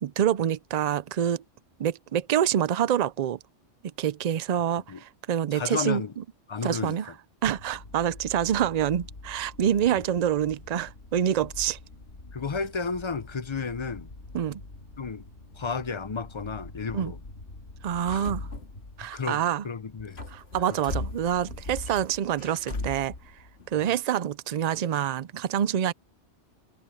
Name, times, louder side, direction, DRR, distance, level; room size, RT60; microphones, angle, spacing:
voice 1, 0.0-1.4 1.8-3.4 4.0-6.2 6.6-7.1 7.4-11.8 14.3-14.6 16.9-17.1 17.8-18.5 19.0-19.6 20.3-23.1 23.7-25.9, right 10 dB, 60° right, 0.4 m, -26 dB
voice 2, 5.5-6.1 6.5-7.0 9.6-10.0 12.3-14.1 15.0-15.3 15.5-17.2 18.0-18.4 19.1-20.2 20.7-20.8 23.7-23.9, left 5 dB, 30° left, 0.5 m, -33 dB
sound 1, 7.4-19.5 19.9-23.8, left 2 dB, 55° left, 2.3 m, -41 dB
omnidirectional pair, 1.3 m